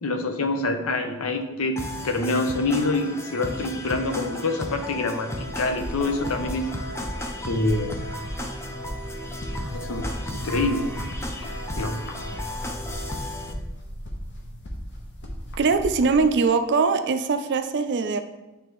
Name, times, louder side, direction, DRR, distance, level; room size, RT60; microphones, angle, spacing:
voice 1, 0.0-5.3 5.6-6.7 7.4-8.0 9.7-10.9 11.8-11.9, left 2 dB, 75° left, 6 dB, 0.7 m, -26 dB
sound 1, 1.8-13.5, left 1 dB, 15° left, 0.5 m, -34 dB
sound 2, 5.4-16.3, equal, 55° left, 1.0 m, -36 dB
voice 2, 15.6-18.2, right 4 dB, 55° right, 8 dB, 0.4 m, -22 dB
9.5 x 3.4 x 3.1 m, 1.1 s
head